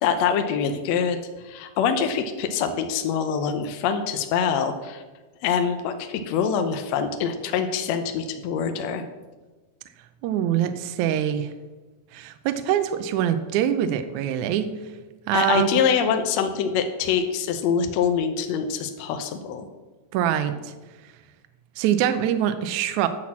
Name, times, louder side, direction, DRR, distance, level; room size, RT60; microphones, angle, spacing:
voice 1, 0.0-1.2 1.4-5.0 5.4-9.0 15.3-19.7, left 7 dB, 80° left, 7 dB, 1.6 m, -24 dB
voice 2, 10.2-11.5 12.1-14.7 15.3-15.7 20.1-20.7 21.8-23.1, right 10 dB, 80° right, 10 dB, 1.8 m, -24 dB
10.0 x 6.0 x 7.3 m, 1.2 s
omnidirectional pair, 3.9 m